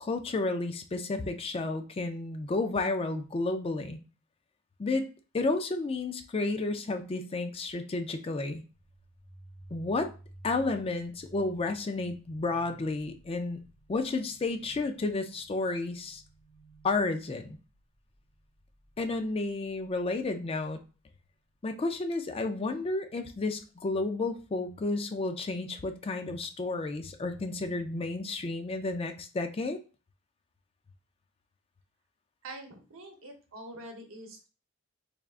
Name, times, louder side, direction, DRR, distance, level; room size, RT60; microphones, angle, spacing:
voice 1, 0.0-4.0 4.8-5.0 5.3-8.6 9.7-10.1 10.4-13.6 13.9-16.2 16.8-17.6 19.0-20.8 21.6-29.8, left 3 dB, 25° left, 6 dB, 0.4 m, -31 dB
sound 1, 8.7-20.2, right 2 dB, 5° right, 1.2 m, -55 dB
voice 2, 32.4-34.5, right 1 dB, 75° right, 2 dB, 0.9 m, -45 dB
3.5 x 3.4 x 2.4 m, 0.34 s
head